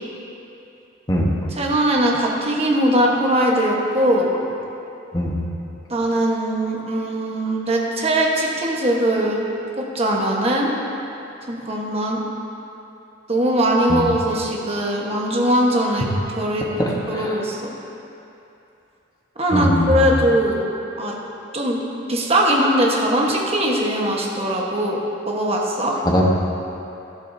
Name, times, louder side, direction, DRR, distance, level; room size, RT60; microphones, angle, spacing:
voice 1, 1.5-4.3 5.9-9.4 9.8-10.7 11.5-12.2 13.3-16.1 16.4-16.6 17.1-17.7 19.4-20.7 21.0-21.1 21.5-21.8 22.1-25.0 25.3-25.9, right 1 dB, 30° right, -2 dB, 1.2 m, -20 dB
voice 2, 16.8-17.4 19.5-20.1 26.0-26.3, equal, 20° left, -3 dB, 1.1 m, -21 dB
13.0 x 11.0 x 2.7 m, 2.8 s
head